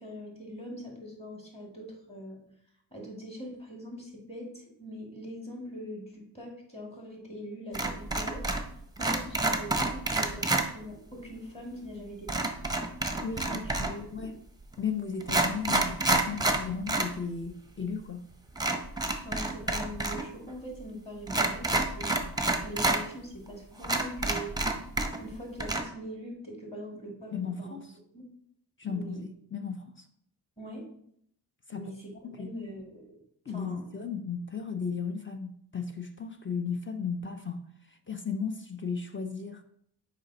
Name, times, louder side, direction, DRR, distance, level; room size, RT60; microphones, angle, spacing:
voice 1, 0.0-2.4 2.9-8.5 9.0-12.5 13.5-14.3 19.2-24.5 25.1-27.8 28.1-28.2 28.8-29.2 30.6-30.9 31.7-32.1 32.4-33.1 33.5-33.9, equal, 15° left, 2.1 m, -42 dB
sound 1, 7.7-8.7 9.0-10.7 12.3-14.0 14.7-14.8 15.2-17.1 17.4-17.5 18.6-20.2 20.5-20.6 21.3-23.0 23.5-23.6 23.8-25.3 25.6-25.8, right 2 dB, 10° right, 0.7 m, -28 dB
voice 2, 13.2-14.4 14.8-18.3 27.3-27.9 28.8-30.1 31.7-31.9 32.2-32.5 33.5-37.6 37.9-39.6, left 6 dB, 30° left, 0.5 m, -35 dB
7.1 x 5.0 x 2.8 m
wide cardioid pair, 85°, 41 cm